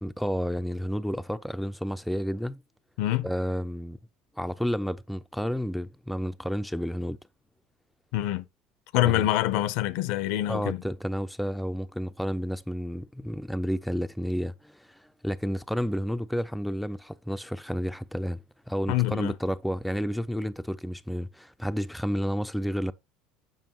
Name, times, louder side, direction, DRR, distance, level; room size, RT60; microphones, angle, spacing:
voice 1, 0.0-2.6 3.2-4.0 4.4-7.2 9.0-9.3 10.5-22.9, equal, ahead, 0.3 m, -31 dB
voice 2, 8.1-8.5 8.9-10.8 18.9-19.3, left 15 dB, 70° left, 0.5 m, -25 dB
7.2 x 5.3 x 2.8 m
supercardioid pair, 95°, 0 cm